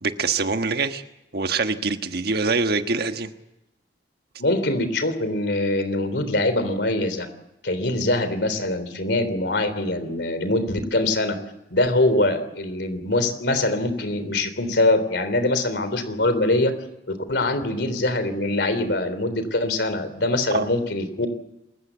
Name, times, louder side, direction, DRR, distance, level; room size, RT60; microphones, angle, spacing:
voice 1, 0.0-1.0 1.3-3.3 20.5-20.7, right 4 dB, 60° right, 8 dB, 1.4 m, -24 dB
voice 2, 4.4-7.3 7.6-11.4 11.7-16.7 17.1-21.3, left 2 dB, 70° left, 11 dB, 3.5 m, -23 dB
28.0 x 15.0 x 8.3 m, 0.92 s
head